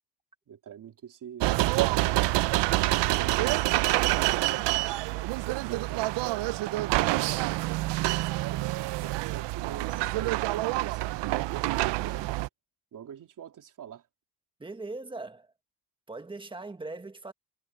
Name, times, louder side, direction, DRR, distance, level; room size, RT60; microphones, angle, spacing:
voice 1, 0.5-2.3 3.1-4.8 5.3-7.3 7.7-12.3 12.9-14.0, right 8 dB, 45° right, 3.2 m, -45 dB
sound 1, 1.4-12.5, right 18 dB, 70° right, 0.7 m, -27 dB
voice 2, 14.6-15.5 16.1-17.3, right 3 dB, 10° right, 1.6 m, -40 dB
cardioid pair, 150°, 45 cm